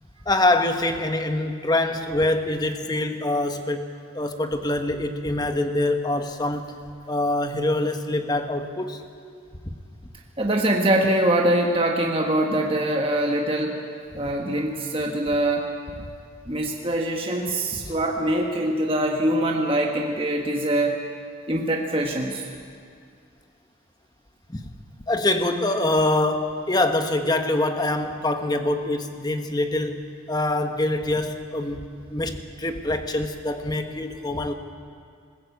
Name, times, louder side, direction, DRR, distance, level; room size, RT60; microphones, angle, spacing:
voice 1, 0.3-3.9 4.1-6.8 7.1-9.0 16.0-16.1 17.8-17.9 24.5-24.7 25.1-34.5, left 2 dB, 20° left, 7 dB, 1.1 m, -25 dB
voice 2, 10.4-13.8 14.1-15.7 16.5-21.0 21.5-22.4, right 1 dB, 25° right, 0 dB, 1.3 m, -23 dB
21.0 x 15.5 x 8.3 m, 2.3 s
head